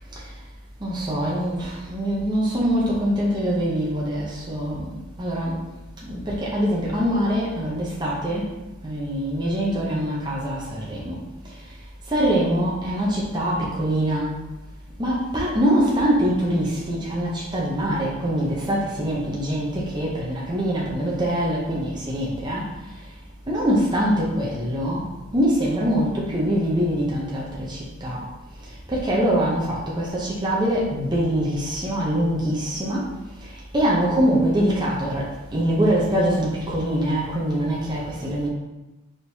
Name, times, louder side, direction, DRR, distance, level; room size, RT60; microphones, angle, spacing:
voice 1, 0.8-4.9 5.2-5.6 6.0-8.5 8.8-11.2 12.1-14.3 15.0-22.7 23.5-25.1 25.3-28.2 28.9-33.1 33.7-35.3 35.5-38.5, equal, 20° right, -5 dB, 0.6 m, -23 dB
4.5 x 3.5 x 2.7 m, 1.0 s
head